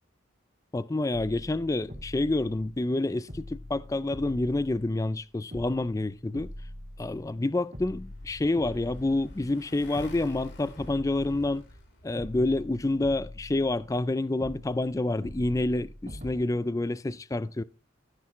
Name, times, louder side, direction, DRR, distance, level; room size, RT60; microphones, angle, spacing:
voice 1, 0.7-6.5 7.0-11.7 12.0-17.6, left 2 dB, 15° left, 0.4 m, -28 dB
sound 1, 1.1-3.0 3.3-5.2 5.5-7.4 7.7-9.7 10.0-11.9 12.2-14.1 14.4-16.4, left 1 dB, 45° right, 3.4 m, -44 dB
Motorcycle, 7.8-12.5, left 1 dB, 65° left, 2.8 m, -49 dB
15.0 x 6.1 x 3.1 m
head